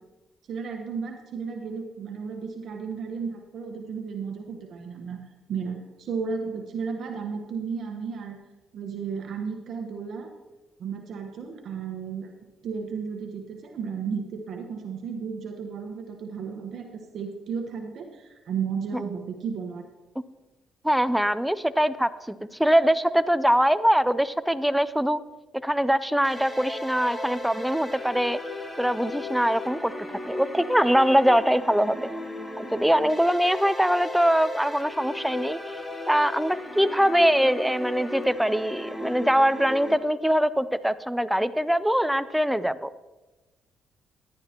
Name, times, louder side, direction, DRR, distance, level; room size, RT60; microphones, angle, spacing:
voice 1, 0.5-5.2 5.5-8.4 8.7-10.3 10.8-12.3 12.6-16.9 17.1-19.8, right 6 dB, 65° right, 3 dB, 1.1 m, -33 dB
voice 2, 20.8-25.2 25.6-28.4 28.8-29.9 30.3-32.1 32.6-35.7 36.1-42.9, equal, 5° right, 14 dB, 0.5 m, -23 dB
sound 1, 26.2-40.0, left 1 dB, 15° left, 1.5 m, -36 dB
14.5 x 11.0 x 2.9 m, 1.1 s
cardioid pair, 90°, 0 cm